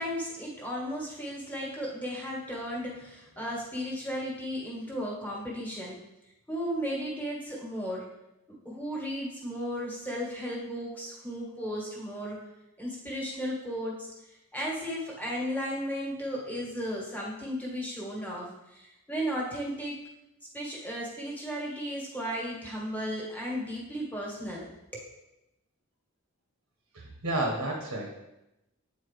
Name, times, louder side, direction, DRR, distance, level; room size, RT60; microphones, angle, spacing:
voice 1, 0.0-6.0 6.5-8.1 8.6-12.4 12.8-20.0 20.5-25.1, equal, 10° left, -4 dB, 1.5 m, -35 dB
voice 2, 26.9-28.1, right 2 dB, 85° right, -1 dB, 1.2 m, -31 dB
8.4 x 4.4 x 3.3 m, 0.92 s
head